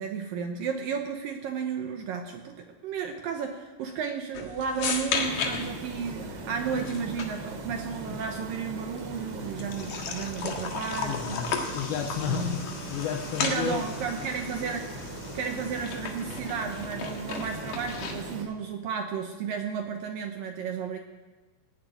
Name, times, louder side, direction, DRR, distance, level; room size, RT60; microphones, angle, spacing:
voice 1, 0.0-11.4 12.3-12.6 13.4-14.9 15.3-21.0, right 6 dB, 70° right, 4 dB, 2.2 m, -33 dB
sound 1, 4.3-18.3, left 5 dB, 60° left, 2.8 m, -36 dB
sound 2, 5.2-18.4, right 1 dB, 85° right, 4.0 m, -40 dB
voice 2, 11.0-13.9, left 7 dB, 75° left, 4 dB, 2.6 m, -32 dB
18.0 x 7.7 x 9.3 m, 1.3 s
omnidirectional pair, 4.9 m